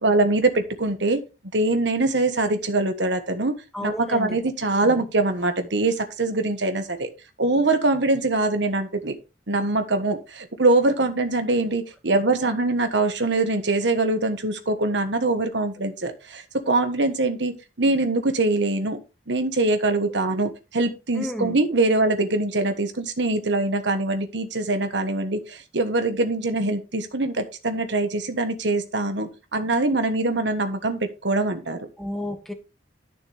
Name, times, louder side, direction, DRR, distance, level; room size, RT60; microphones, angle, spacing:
voice 1, 0.0-1.2 1.5-3.5 3.8-7.1 7.4-9.2 9.5-31.9, right 2 dB, 70° right, 1.4 m, -23 dB
voice 2, 3.7-4.4 4.8-5.0 12.4-12.5 21.1-21.6 32.0-32.5, left 1 dB, ahead, 1.5 m, -32 dB
12.0 x 6.7 x 3.4 m
head